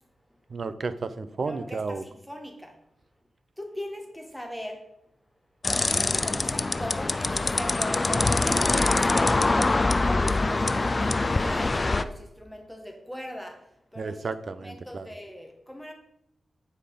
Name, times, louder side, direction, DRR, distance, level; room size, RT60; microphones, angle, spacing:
voice 1, 0.5-2.0 14.0-15.1, right 4 dB, 55° right, 12 dB, 0.7 m, -32 dB
voice 2, 1.3-2.8 3.6-4.8 5.9-9.3 10.0-13.6 13.9-14.3 14.6-15.9, equal, 5° left, 2 dB, 1.9 m, -39 dB
sound 1, 5.6-12.0, left 3 dB, 30° left, 0.5 m, -24 dB
9.0 x 5.0 x 5.6 m, 0.78 s
wide cardioid pair, 85°, 0 cm